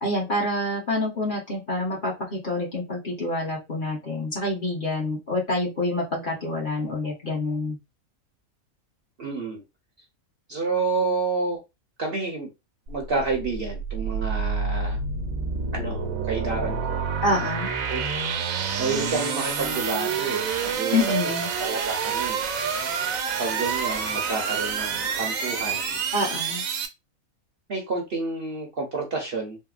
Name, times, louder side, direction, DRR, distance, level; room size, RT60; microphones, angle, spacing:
voice 1, 0.0-7.8 17.2-17.7 20.9-21.5 26.1-26.6, left 2 dB, 40° left, -3 dB, 1.2 m, -27 dB
voice 2, 9.2-9.6 10.5-11.6 12.0-12.5 12.9-15.0 15.7-17.0 17.9-18.1 18.8-21.0 21.2-21.3 21.6-22.5 23.4-26.0 27.7-29.6, right 3 dB, 55° right, -1 dB, 0.8 m, -29 dB
sound 1, 12.9-26.9, right 5 dB, 75° right, 1.0 m, -28 dB
3.5 x 2.1 x 2.4 m, 0.24 s
omnidirectional pair, 1.5 m